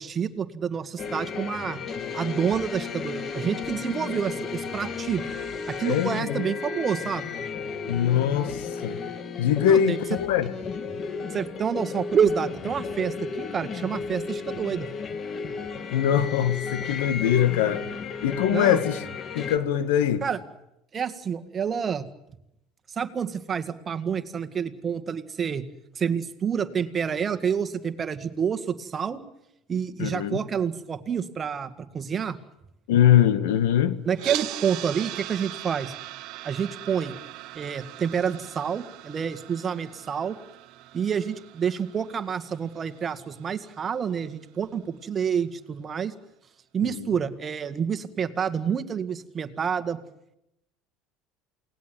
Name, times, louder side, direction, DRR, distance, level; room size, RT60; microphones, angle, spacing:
voice 1, 0.0-1.8 2.1-5.2 5.7-7.3 9.7-10.0 11.3-14.9 18.5-18.8 20.2-20.4 20.9-22.1 22.9-25.7 26.0-29.2 29.7-32.4 34.1-35.9 36.4-37.1 37.5-40.4 40.9-46.1 46.7-50.0, right 7 dB, 30° right, 2.0 m, -28 dB
sound 1, 1.0-19.6, left 5 dB, 35° left, 1.9 m, -34 dB
voice 2, 5.8-6.5 7.9-9.0 9.4-10.5 15.9-17.9 18.2-19.0 19.3-20.2 30.0-30.4 32.9-34.0 46.8-47.1, left 10 dB, 85° left, 2.1 m, -22 dB
sound 2, 34.1-44.2, right 17 dB, 60° right, 1.1 m, -40 dB
28.5 x 19.0 x 9.4 m
supercardioid pair, 115°, 0 cm